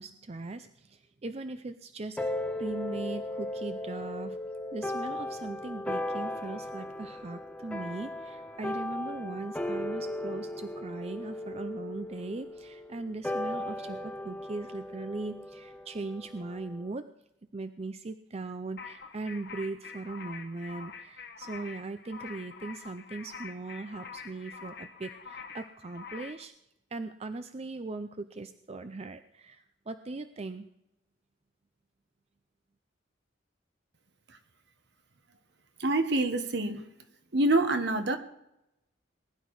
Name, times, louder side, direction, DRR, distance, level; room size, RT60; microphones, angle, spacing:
voice 1, 0.0-4.4 4.7-17.1 17.5-26.5 26.9-30.7, right 3 dB, 35° right, 10 dB, 0.5 m, -39 dB
mixed chord progression, 2.2-16.9, left 1 dB, 5° left, 0.7 m, -37 dB
sound 1, 18.8-26.4, left 5 dB, 60° left, 1.2 m, -45 dB
voice 2, 35.8-36.8 37.3-38.2, right 2 dB, 60° right, 8 dB, 1.3 m, -26 dB
20.0 x 11.0 x 4.8 m, 0.86 s
head